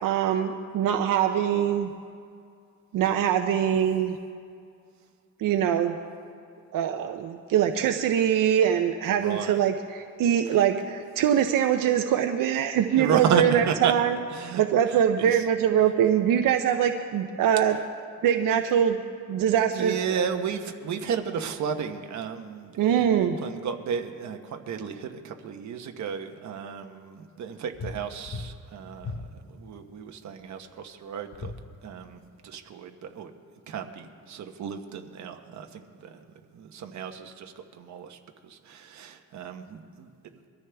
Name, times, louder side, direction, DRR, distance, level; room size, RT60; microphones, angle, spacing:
voice 1, 0.0-1.9 2.9-4.2 5.4-6.0 6.7-14.2 14.5-17.8 18.2-19.0 19.3-19.9 22.8-23.4, right 9 dB, 85° right, 6 dB, 0.7 m, -23 dB
voice 2, 9.1-9.6 12.9-13.9 14.3-14.6 14.9-15.4 19.7-31.5 31.8-33.3 33.7-36.2 36.5-38.2 38.4-40.1, right 7 dB, 60° right, 5 dB, 1.1 m, -33 dB
sound 1, 27.7-28.0 28.3-28.5 29.0-29.3 31.3-31.6, left 4 dB, 40° left, 0.9 m, -35 dB
23.0 x 13.5 x 3.5 m, 2.4 s
cardioid pair, 165°, 32 cm